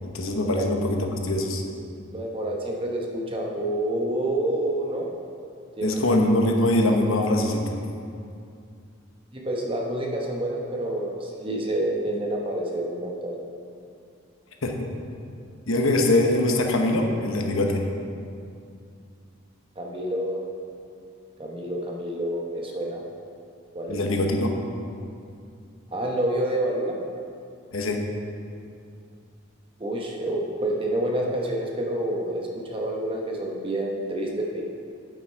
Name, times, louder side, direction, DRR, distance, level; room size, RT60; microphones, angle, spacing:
voice 1, 0.0-1.6 5.8-7.7 14.6-14.9 15.7-17.9 23.9-24.5 27.7-28.0, left 1 dB, 70° left, 3 dB, 1.0 m, -23 dB
voice 2, 2.1-5.1 5.8-5.9 9.3-13.4 19.8-20.4 21.4-23.0 23.7-24.0 25.9-27.0 29.8-34.6, right 1 dB, 25° right, -1 dB, 1.0 m, -28 dB
8.5 x 7.8 x 4.6 m, 2.4 s
head